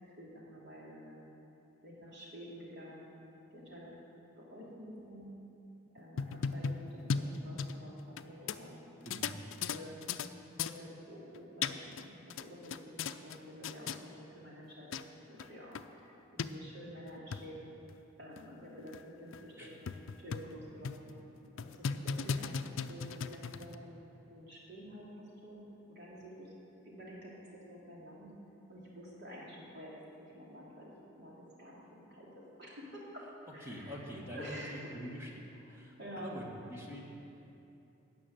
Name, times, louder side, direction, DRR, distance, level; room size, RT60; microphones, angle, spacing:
voice 1, 0.2-1.3 1.8-3.2 3.5-4.0 4.4-5.3 5.9-8.8 9.3-9.4 9.7-10.1 10.6-12.8 13.2-17.7 18.2-21.2 21.5-25.6 25.9-26.5 26.8-28.3 28.7-31.3 31.6-33.2 33.5-34.0 34.3-34.9 36.0-36.4, equal, 55° right, -5 dB, 3.0 m, -49 dB
sound 1, 6.0-8.2 8.5-8.6 9.1-10.3 10.6-10.8 11.3-12.0 12.3-13.4 13.6-14.0 14.6-14.7 14.9-15.0 15.4-15.5 15.7-15.8 16.4-16.5 17.1-17.4 17.9-18.0 18.4-18.5 18.9-19.0 19.3-19.4 19.9-20.5 20.8-21.1 21.6-23.7, left 5 dB, 70° left, 0.4 m, -36 dB
voice 2, 9.0-9.3 19.6-19.7 33.6-35.3 35.7-37.1, equal, 10° right, -2 dB, 1.5 m, -45 dB
13.0 x 6.1 x 9.0 m, 2.9 s
head